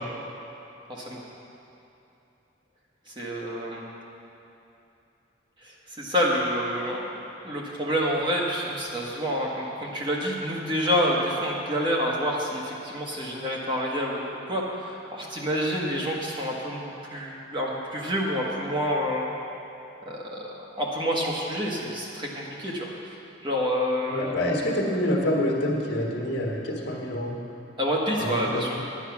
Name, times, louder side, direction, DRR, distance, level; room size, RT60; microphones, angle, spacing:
voice 1, 0.9-1.2 3.1-3.9 5.6-7.0 7.4-19.3 20.0-22.9 23.4-24.3 27.8-28.8, equal, 25° right, -3 dB, 1.4 m, -28 dB
voice 2, 24.1-27.3 28.2-28.7, left 1 dB, 65° left, -1 dB, 1.6 m, -27 dB
9.9 x 9.9 x 6.0 m, 2.9 s
head